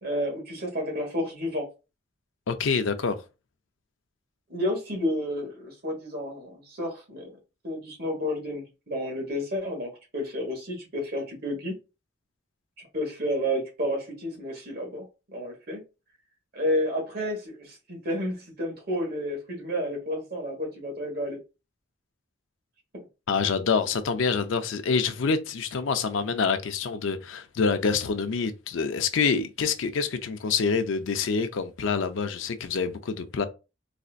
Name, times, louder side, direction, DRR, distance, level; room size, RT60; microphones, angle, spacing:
voice 1, 0.0-1.7 4.5-7.3 7.6-11.7 12.8-15.8 16.5-21.4 22.9-23.0, equal, 55° right, 1.4 m, -31 dB
voice 2, 2.5-3.2 23.3-33.5, left 5 dB, 85° left, 0.5 m, -26 dB
4.1 x 2.5 x 2.4 m
head